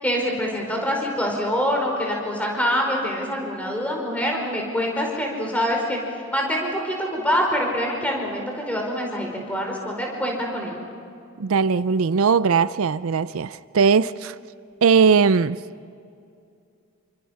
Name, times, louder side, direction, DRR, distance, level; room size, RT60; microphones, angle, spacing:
voice 1, 0.0-10.8, equal, 5° left, 4.9 m, -25 dB
voice 2, 11.4-14.4 14.8-15.6, right 5 dB, 70° right, 0.5 m, -19 dB
28.5 x 25.5 x 5.9 m
head